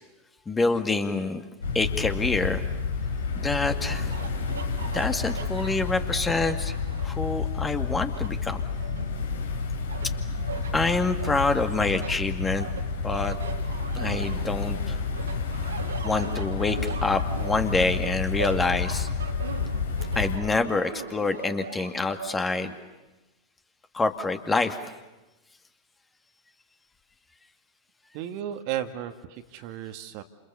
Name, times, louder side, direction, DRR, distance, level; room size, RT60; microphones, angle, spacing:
voice 1, 0.5-1.4 1.7-2.6 3.4-4.1 4.8-6.7 7.0-8.6 10.7-12.7 13.0-13.4 13.9-15.0 16.0-19.1 20.2-22.7 23.9-24.8, left 3 dB, 15° left, 7 dB, 2.0 m, -26 dB
sound 1, 1.6-20.4, left 4 dB, 70° left, 3.3 m, -30 dB
sound 2, 3.8-7.3 7.7-9.5 9.9-10.7 11.2-14.8 15.1-22.7, right 6 dB, 70° right, 2.8 m, -40 dB
voice 2, 28.1-30.2, right 11 dB, 45° right, 8 dB, 1.9 m, -34 dB
29.5 x 28.0 x 7.0 m, 1.1 s
figure-of-eight pair, 90°, 0 cm